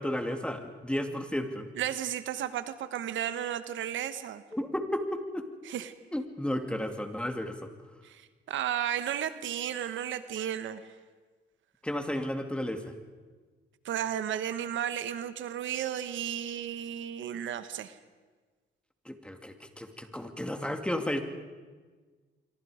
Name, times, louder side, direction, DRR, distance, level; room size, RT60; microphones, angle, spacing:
voice 1, 0.0-1.7 4.5-5.5 6.1-7.7 11.8-12.9 19.0-21.2, left 1 dB, 5° left, 6 dB, 2.5 m, -33 dB
voice 2, 1.8-4.4 5.6-5.9 8.0-10.9 13.8-18.0, right 10 dB, 75° right, 12 dB, 1.2 m, -33 dB
26.0 x 24.0 x 5.1 m, 1.4 s
cardioid pair, 90°, 20 cm